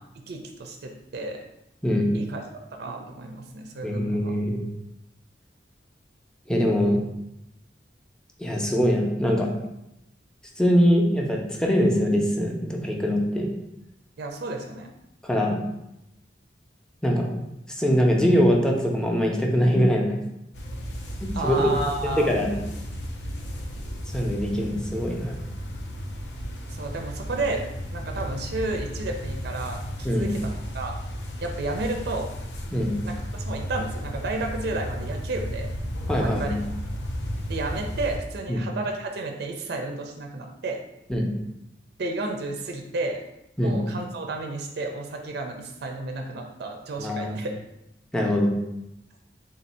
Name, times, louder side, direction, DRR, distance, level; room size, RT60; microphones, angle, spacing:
voice 1, 0.3-1.4 2.1-2.4 2.7-4.3 14.2-14.9 21.4-22.4 26.7-27.6 27.9-31.0 31.4-32.3 33.0-35.7 36.2-36.6 37.5-40.8 42.0-43.2 43.6-47.6, right 2 dB, 65° right, 3 dB, 0.4 m, -32 dB
voice 2, 3.8-4.6 6.5-7.0 8.4-9.5 10.6-13.5 15.2-15.6 17.0-17.3 17.8-20.1 21.2-21.7 22.2-22.5 24.1-25.4 30.0-30.3 32.7-32.9 36.1-36.6 38.5-38.6 41.1-41.3 43.6-43.8 47.0-47.4 48.1-48.5, equal, 5° left, 0 dB, 0.5 m, -22 dB
sound 1, 20.5-38.2, equal, 75° left, 0.6 m, -34 dB
3.8 x 2.6 x 4.1 m, 0.87 s
head